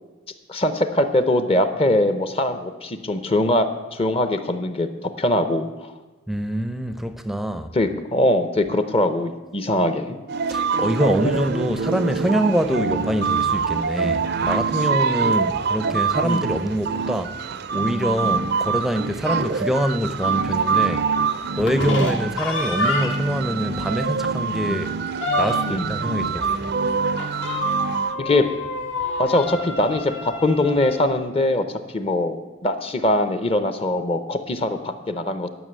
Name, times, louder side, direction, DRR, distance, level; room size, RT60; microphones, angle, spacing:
voice 1, 0.5-5.9 7.7-10.2 12.7-12.9 16.2-16.5 18.2-18.4 21.9-22.1 24.7-24.8 25.7-25.9 28.2-28.4 29.2-35.5, left 1 dB, 30° left, 0.7 m, -22 dB
voice 2, 6.3-7.7 10.5-17.3 17.7-21.1 21.6-25.0 25.4-26.8, equal, ahead, 0.6 m, -25 dB
sound 1, 10.3-28.1, right 5 dB, 55° right, 0.5 m, -25 dB
sound 2, 21.5-23.4 23.8-23.9 24.2-24.3 24.7-25.9 27.2-31.0, left 3 dB, 70° left, 1.8 m, -29 dB
11.0 x 5.9 x 8.1 m
head